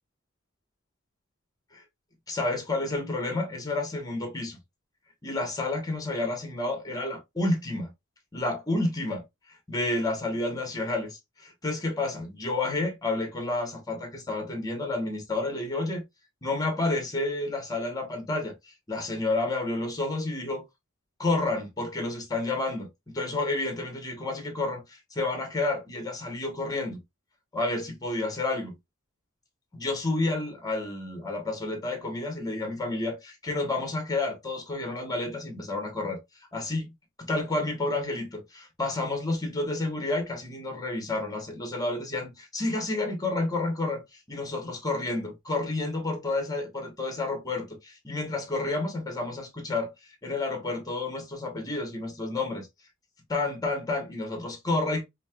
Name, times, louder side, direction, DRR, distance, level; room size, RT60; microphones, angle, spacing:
voice 1, 2.3-4.6 5.2-7.9 8.3-9.2 9.7-16.0 16.4-18.5 18.9-20.6 21.2-22.9 23.1-27.0 27.5-28.7 29.7-36.2 36.5-36.9 37.2-44.0 44.3-49.9 50.2-52.7 53.3-55.0, left 2 dB, 20° left, 1.2 m, -30 dB
5.2 x 2.8 x 2.3 m
head